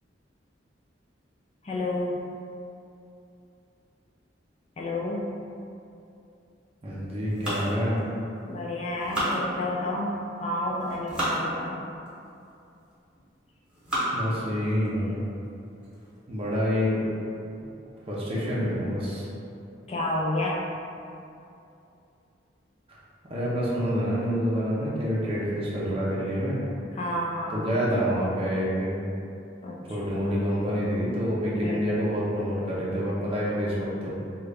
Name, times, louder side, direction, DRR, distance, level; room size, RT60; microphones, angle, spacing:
voice 1, 1.6-2.3 4.8-5.3 8.5-11.8 19.9-20.6 26.9-27.6 29.6-30.2 31.6-31.8, left 1 dB, 35° left, -3 dB, 0.4 m, -30 dB
voice 2, 6.8-8.0 14.1-15.2 16.3-17.0 18.1-19.2 23.2-26.6 27.5-29.1 29.9-34.1, equal, 30° right, -7 dB, 0.6 m, -27 dB
sound 1, 7.3-8.5 8.9-10.0 10.7-11.4 12.1-12.2 12.9-13.2 13.7-14.3 14.8-14.9 15.3-15.4 15.8-16.1, right 1 dB, 5° right, 1.0 m, -32 dB
3.7 x 2.3 x 3.3 m, 2.7 s
head